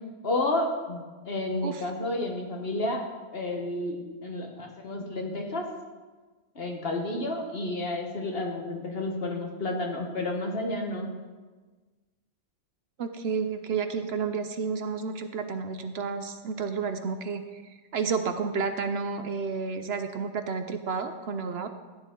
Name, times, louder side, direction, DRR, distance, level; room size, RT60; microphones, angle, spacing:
voice 1, 0.2-3.0 3.3-5.6 6.5-11.1, left 2 dB, 50° left, 1 dB, 1.6 m, -31 dB
voice 2, 13.0-21.7, right 5 dB, 60° right, 8 dB, 0.9 m, -31 dB
14.0 x 9.7 x 3.7 m, 1.3 s
omnidirectional pair, 1.3 m